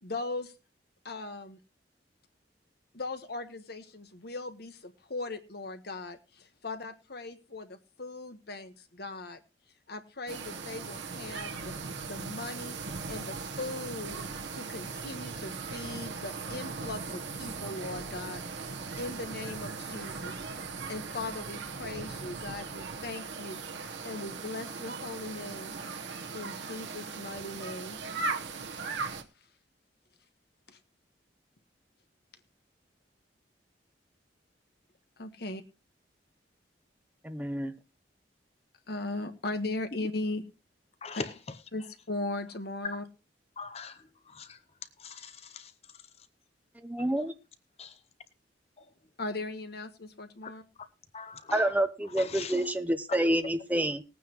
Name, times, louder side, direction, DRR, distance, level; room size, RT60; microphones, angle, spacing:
voice 1, 0.0-0.5 1.0-1.6 2.9-9.4 9.9-11.7 12.0-12.8 13.1-14.2 14.5-20.3 20.9-23.6 24.0-25.8 26.3-28.0 30.7-30.8 35.2-35.6 38.9-40.4 41.1-41.2 41.7-43.1 49.2-50.6, left 2 dB, 60° left, 1.4 m, -38 dB
sound 1, 10.3-29.2, right 4 dB, 80° right, 1.1 m, -38 dB
voice 2, 37.2-37.8 46.8-47.3 51.5-54.0, right 1 dB, 10° right, 0.8 m, -28 dB
voice 3, 43.6-43.9 44.4-44.5 45.0-45.7 47.8-47.9 51.1-51.7 52.2-52.5, left 6 dB, 35° left, 0.7 m, -42 dB
19.5 x 9.3 x 3.1 m
head